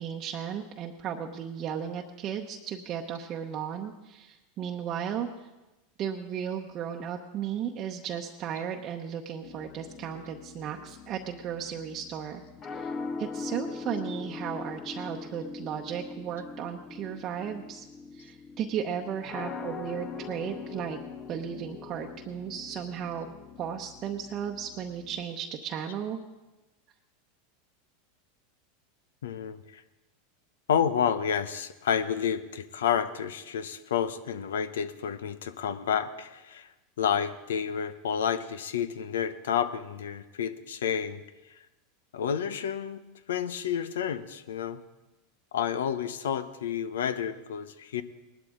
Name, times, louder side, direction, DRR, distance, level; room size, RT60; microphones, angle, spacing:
voice 1, 0.0-5.5 6.0-12.4 12.7-17.8 18.1-21.0 21.3-23.3 23.6-26.2, right 8 dB, 40° right, 2 dB, 0.8 m, -35 dB
sound 1, 9.4-25.2, left 5 dB, 30° left, 0.8 m, -42 dB
voice 2, 29.2-29.8 30.7-36.7 37.0-41.2 42.1-43.0 43.3-44.8 45.5-48.0, left 8 dB, 90° left, 14 dB, 0.7 m, -30 dB
18.5 x 12.0 x 3.7 m, 1.1 s
supercardioid pair, 120°, 0 cm